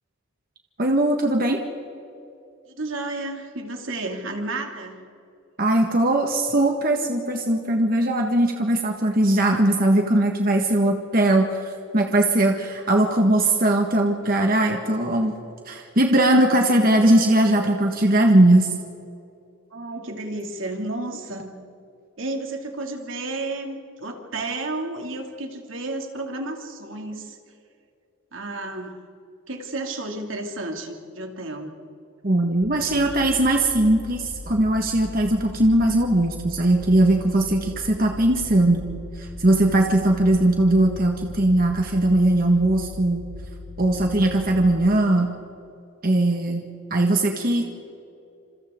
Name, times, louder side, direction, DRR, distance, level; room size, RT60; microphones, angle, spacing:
voice 1, 0.8-1.6 5.6-15.3 15.7-18.7 32.2-38.9 39.2-43.3 43.8-45.3 46.0-47.7, right 1 dB, 45° right, 2 dB, 1.7 m, -20 dB
voice 2, 2.7-5.0 19.7-21.6 22.2-27.4 28.3-29.0 29.5-31.7, right 2 dB, 75° right, 3 dB, 2.7 m, -32 dB
sound 1, 32.6-44.7, left 3 dB, 90° left, 5.3 m, -39 dB
29.0 x 27.5 x 3.8 m, 2.7 s
head